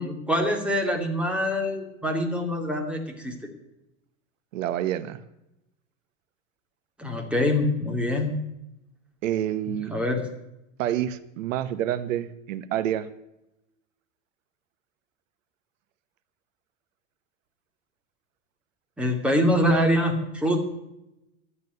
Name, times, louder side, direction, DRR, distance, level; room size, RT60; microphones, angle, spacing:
voice 1, 0.0-3.3 7.0-8.3 9.9-10.2 19.0-20.6, left 1 dB, 5° right, 2 dB, 2.6 m, -24 dB
voice 2, 4.5-5.2 9.2-9.9 10.8-13.1, right 11 dB, 80° right, 14 dB, 1.1 m, -28 dB
12.5 x 9.0 x 9.4 m, 0.88 s
supercardioid pair, 140°, 38 cm